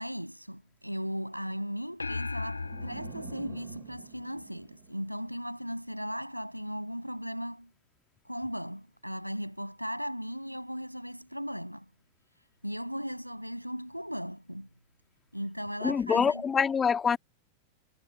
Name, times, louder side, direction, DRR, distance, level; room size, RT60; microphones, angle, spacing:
voice 1, 0.0-7.7 8.2-11.9 12.4-14.7 15.3-16.4, equal, 90° right, 6.2 m, -37 dB
sound 1, 2.0-4.6, left 3 dB, 80° left, 1.4 m, -38 dB
sound 2, 2.5-5.6, right 37 dB, 45° right, 5.9 m, -49 dB
voice 2, 15.8-17.2, left 6 dB, 20° left, 2.3 m, -25 dB
figure-of-eight pair, 90°, 0 cm